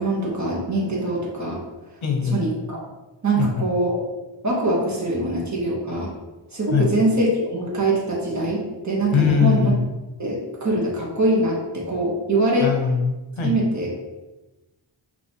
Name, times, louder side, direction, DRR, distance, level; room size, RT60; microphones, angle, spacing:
voice 1, 0.0-1.6 2.3-2.8 3.2-4.0 4.4-6.1 6.5-9.7 10.2-12.7 13.4-13.9, right 2 dB, 35° right, -3 dB, 1.2 m, -23 dB
voice 2, 2.0-2.4 3.4-3.6 6.7-6.9 9.1-9.9 12.6-13.6, left 6 dB, 80° left, 2 dB, 0.8 m, -21 dB
5.4 x 2.8 x 3.0 m, 1.1 s
wide cardioid pair, 85°, 46 cm